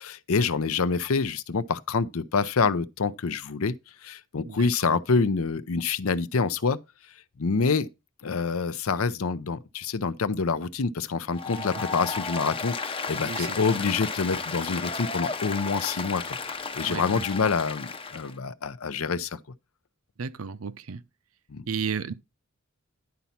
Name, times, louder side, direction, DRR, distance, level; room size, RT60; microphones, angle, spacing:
voice 1, 0.0-3.7 4.0-6.8 7.4-7.9 8.2-19.4 21.5-21.6, left 4 dB, 70° left, 0.6 m, -27 dB
voice 2, 4.5-5.0 11.6-11.7 13.3-13.5 13.7-13.9 16.9-17.2 20.2-21.0 21.7-22.1, right 6 dB, 75° right, 0.6 m, -33 dB
Applause, 11.3-18.3, left 4 dB, 25° left, 0.7 m, -33 dB
10.5 x 4.1 x 5.8 m
head